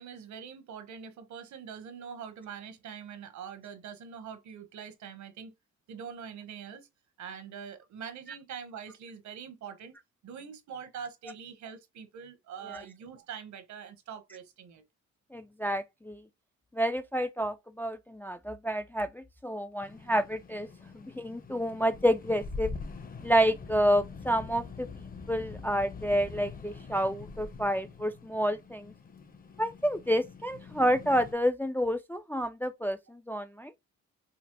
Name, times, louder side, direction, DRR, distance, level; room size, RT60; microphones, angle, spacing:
voice 1, 0.0-5.5 5.9-6.9 7.2-9.9 10.2-14.8, right 7 dB, 70° right, 1.0 m, -44 dB
voice 2, 15.3-16.2 16.7-20.7 20.9-22.7 23.2-24.9 25.3-28.9 29.6-33.7, equal, 5° left, 0.3 m, -29 dB
sound 1, 19.8-31.3, left 4 dB, 30° left, 0.7 m, -44 dB
4.9 x 2.0 x 2.9 m
cardioid pair, 90°, 30 cm